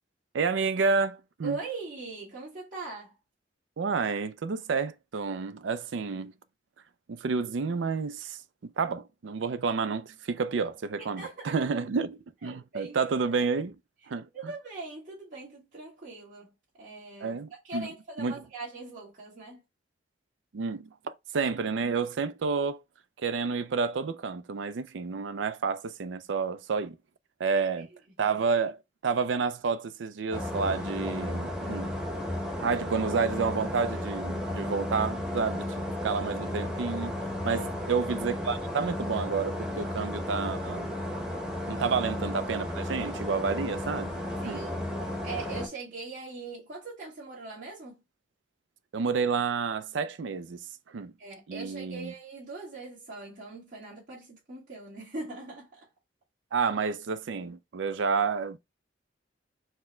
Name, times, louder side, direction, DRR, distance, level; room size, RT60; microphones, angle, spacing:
voice 1, 0.3-1.6 3.8-6.3 7.1-13.8 14.1-14.3 17.2-17.9 18.2-18.4 20.5-22.8 23.2-27.0 27.4-27.9 28.2-31.9 32.6-35.7 36.0-37.1 37.4-40.9 41.7-44.2 44.4-44.6 48.9-50.6 50.9-51.1 51.5-52.1 56.5-58.6, right 5 dB, 85° right, 0.4 m, -30 dB
voice 2, 1.4-3.2 11.2-11.6 12.4-13.0 14.3-16.5 16.8-19.6 28.2-28.4 37.4-38.1 41.8-41.9 44.4-48.0 51.2-55.8, right 3 dB, 45° right, 1.7 m, -41 dB
sound 1, 30.3-45.7, left 1 dB, 5° right, 0.9 m, -34 dB
4.4 x 2.1 x 4.3 m
head